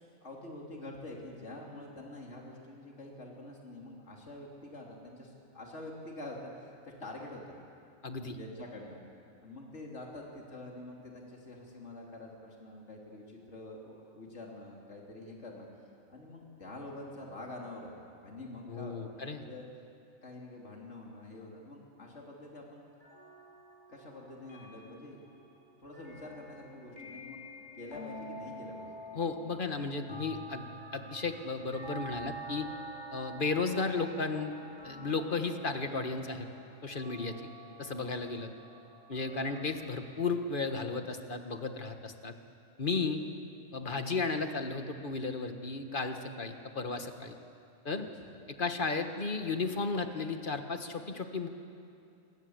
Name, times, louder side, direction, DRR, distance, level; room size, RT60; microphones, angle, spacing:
voice 1, 0.0-7.5 8.4-9.0 9.4-15.7 16.1-19.7 20.2-22.8 23.9-25.2 25.8-27.4 27.7-28.9 39.3-39.6 48.2-48.3, left 2 dB, 55° left, -1 dB, 3.5 m, -46 dB
voice 2, 8.0-8.4 18.7-19.4 29.1-30.6 30.9-32.7 33.1-34.5 34.8-36.5 36.8-37.5 37.8-38.5 39.1-42.3 42.8-43.2 43.7-47.4 47.8-48.1 48.5-51.5, left 4 dB, 40° left, 6 dB, 1.7 m, -34 dB
sound 1, 23.0-39.7, right 1 dB, 20° left, 8.0 m, -48 dB
27.0 x 22.0 x 8.1 m, 2.5 s
omnidirectional pair, 1.4 m